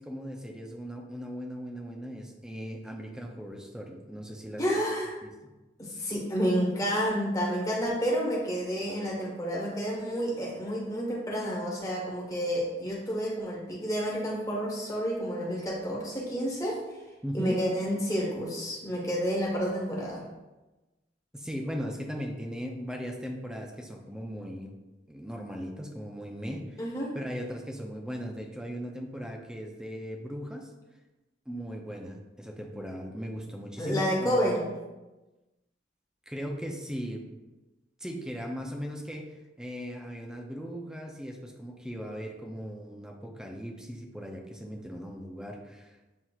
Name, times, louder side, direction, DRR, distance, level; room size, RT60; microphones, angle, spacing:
voice 1, 0.0-4.6 5.2-5.3 6.0-6.1 17.2-17.6 21.3-24.7 25.1-26.8 27.1-30.7 31.5-34.6 36.3-37.3 38.0-46.0, equal, 5° right, 1 dB, 0.4 m, -38 dB
voice 2, 4.6-5.2 5.8-17.0 17.3-20.2 26.8-27.1 33.8-34.6, equal, 20° left, -4 dB, 1.0 m, -30 dB
7.6 x 2.8 x 2.4 m, 1.1 s
head